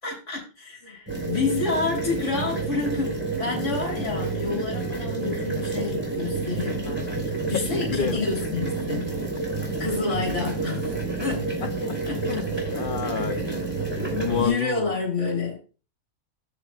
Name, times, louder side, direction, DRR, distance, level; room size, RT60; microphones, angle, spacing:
voice 1, 0.0-9.1 9.8-10.9 11.2-11.7 12.1-12.7 13.9-14.0 14.4-15.6, left 4 dB, 55° left, -2 dB, 3.7 m, -29 dB
sound 1, 1.1-14.5, right 3 dB, 5° right, 4.5 m, -29 dB
voice 2, 7.5-8.2 11.6-12.0 12.3-12.4 12.7-13.6 14.0-15.0, left 8 dB, 90° left, 11 dB, 0.4 m, -30 dB
14.5 x 6.0 x 2.3 m, 0.32 s
omnidirectional pair, 1.5 m